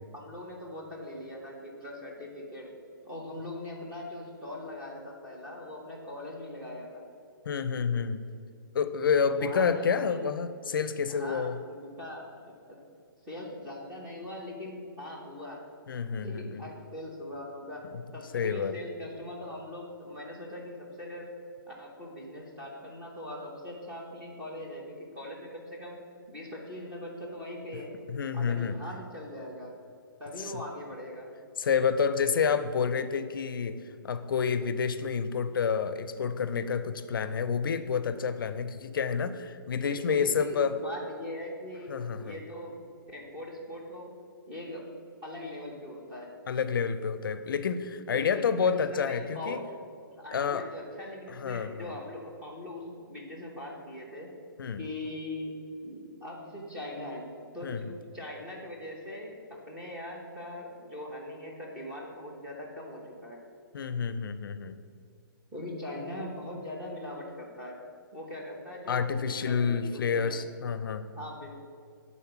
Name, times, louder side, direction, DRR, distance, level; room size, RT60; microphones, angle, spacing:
voice 1, 0.1-2.7 3.0-7.0 9.3-10.2 11.1-12.8 13.3-15.6 16.2-17.9 18.1-21.3 21.7-27.9 28.3-29.7 30.2-31.3 39.8-42.8 43.1-44.1 44.5-44.8 45.2-46.3 48.1-49.6 50.0-54.3 54.8-57.8 58.1-63.4 65.5-67.8 68.1-70.4 71.1-71.5, left 1 dB, 10° right, -3 dB, 0.9 m, -41 dB
voice 2, 7.5-8.2 8.7-11.6 15.9-16.6 17.9-18.0 18.3-18.7 28.1-28.8 30.4-30.5 31.6-40.8 41.9-42.4 46.5-49.6 50.3-50.6 51.3-51.9 54.6-54.8 57.6-57.8 63.7-64.7 68.9-71.1, left 6 dB, 70° left, 12 dB, 0.4 m, -29 dB
7.2 x 4.1 x 5.8 m, 2.4 s
hypercardioid pair, 170°, 12 cm